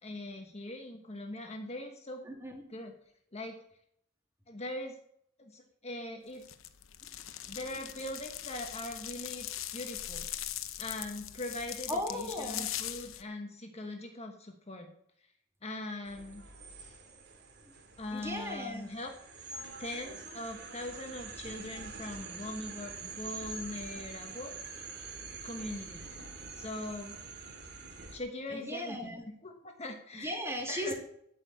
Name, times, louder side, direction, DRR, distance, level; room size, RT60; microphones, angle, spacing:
voice 1, 0.0-2.2 2.7-2.9 3.3-3.6 4.5-5.0 5.4-6.4 7.5-9.5 9.7-10.3 10.8-14.9 15.6-16.4 18.0-19.1 19.4-19.5 19.8-24.5 25.4-26.0 26.5-27.2 28.1-29.2 29.4-30.4 30.7-30.9, left 1 dB, 35° left, 3 dB, 1.4 m, -41 dB
voice 2, 2.2-2.6 7.0-7.1 7.7-7.8 11.9-12.7 17.6-17.7 18.1-18.9 28.5-29.2 30.1-30.9, equal, 15° right, 1 dB, 2.5 m, -37 dB
sound 1, 6.4-13.2, left 12 dB, 85° left, 0.8 m, -41 dB
sound 2, 16.1-28.2, right 4 dB, 60° right, 2.3 m, -46 dB
13.0 x 5.7 x 8.4 m, 0.71 s
head